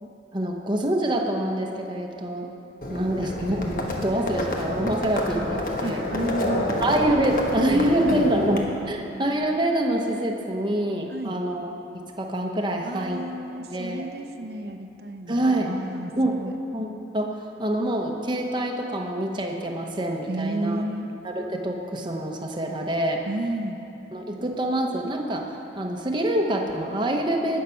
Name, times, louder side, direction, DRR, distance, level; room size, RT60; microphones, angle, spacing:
voice 1, 0.0-2.5 2.9-6.1 6.8-8.6 8.9-11.7 12.2-13.2 13.7-14.0 15.3-15.7 16.2-16.4 16.7-20.9 21.2-23.2 24.1-25.4 25.8-27.6, right 1 dB, 25° right, 1 dB, 0.9 m, -26 dB
Livestock farm animals working animals, 2.8-8.6, left 1 dB, 50° left, 1.4 m, -29 dB
voice 2, 5.8-6.9 7.7-8.3 8.8-8.9 11.1-11.4 12.8-16.1 16.4-16.6 20.3-21.1 23.3-23.8, right 1 dB, 60° right, 6 dB, 0.8 m, -32 dB
18.5 x 6.6 x 5.8 m, 2.8 s
head